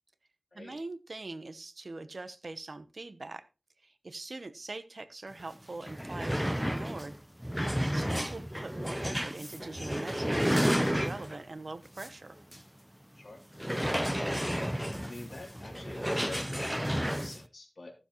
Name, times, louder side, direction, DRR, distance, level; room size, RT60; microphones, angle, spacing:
voice 1, 0.5-3.4 3.8-7.1 7.9-12.3, right 2 dB, 65° right, 0.9 m, -42 dB
sound 1, 5.4-5.5 5.8-11.5 12.0-12.1 12.5-12.6 13.5-17.4, equal, 5° right, 0.7 m, -31 dB
voice 2, 15.0-17.9, left 2 dB, 75° left, 3.0 m, -47 dB
15.0 x 7.2 x 3.1 m
wide cardioid pair, 45°, 0 cm